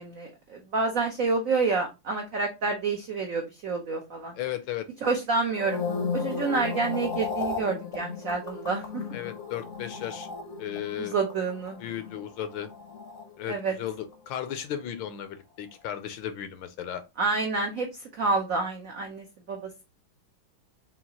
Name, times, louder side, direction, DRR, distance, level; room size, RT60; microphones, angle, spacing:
voice 1, 0.0-4.3 5.0-5.8 6.1-9.0 11.0-11.8 13.5-13.7 17.2-19.8, right 4 dB, 85° right, 3 dB, 0.7 m, -28 dB
voice 2, 4.3-4.9 9.1-10.3 10.6-11.2 11.8-12.7 13.4-17.0, left 10 dB, 75° left, 9 dB, 1.2 m, -35 dB
sound 1, 5.5-13.9 14.1-14.5, left 5 dB, 60° left, 0.7 m, -35 dB
5.6 x 2.4 x 2.8 m, 0.26 s
omnidirectional pair, 2.3 m